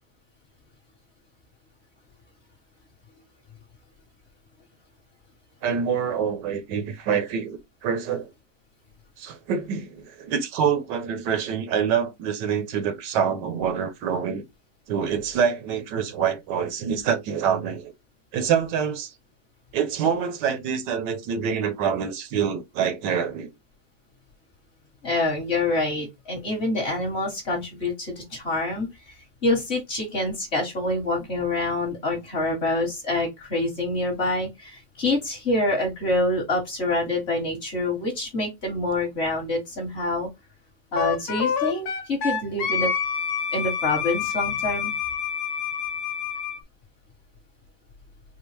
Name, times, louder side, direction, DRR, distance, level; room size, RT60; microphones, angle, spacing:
voice 1, 5.6-8.3 9.2-14.4 14.9-17.9 18.3-19.1 19.7-23.5, right 7 dB, 80° right, 1.3 m, -26 dB
voice 2, 25.0-28.9 29.4-40.3 40.9-42.9 43.5-44.9, left 2 dB, 40° left, 1.3 m, -26 dB
Wind instrument woodwind instrument, 41.0-46.6, left 7 dB, 65° left, 1.2 m, -27 dB
4.3 x 2.1 x 3.2 m
omnidirectional pair, 1.9 m